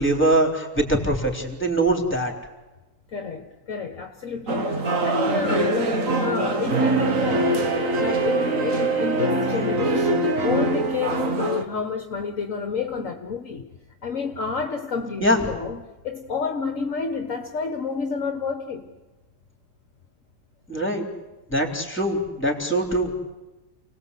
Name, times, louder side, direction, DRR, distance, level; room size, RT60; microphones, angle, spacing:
voice 1, 0.0-2.3 15.2-15.4 20.7-21.1 21.5-23.1, right 1 dB, 5° left, 3.6 m, -22 dB
voice 2, 3.1-7.7 8.0-13.7 14.0-18.9, left 5 dB, 50° left, 1.5 m, -29 dB
sound 1, 4.5-11.6, right 2 dB, 50° right, 2.0 m, -23 dB
29.0 x 19.0 x 8.3 m
omnidirectional pair, 1.8 m